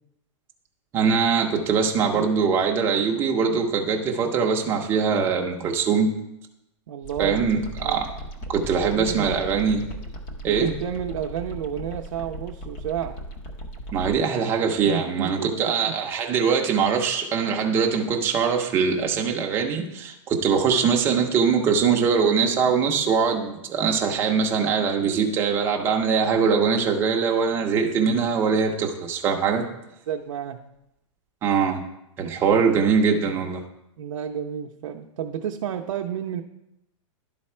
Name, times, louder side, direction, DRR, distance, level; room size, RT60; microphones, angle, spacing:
voice 1, 0.9-6.1 7.2-8.1 8.5-9.8 10.4-10.7 13.9-29.6 31.4-31.8 32.2-33.6, right 6 dB, 15° right, 2 dB, 0.6 m, -22 dB
voice 2, 6.9-7.5 7.8-8.0 8.8-9.3 10.4-13.2 14.8-15.9 30.1-30.6 34.0-36.4, right 9 dB, 65° right, 1 dB, 0.6 m, -31 dB
sound 1, 7.0-14.2, right 1 dB, 30° left, 0.7 m, -37 dB
11.5 x 4.1 x 4.3 m, 0.85 s
supercardioid pair, 170°, 17 cm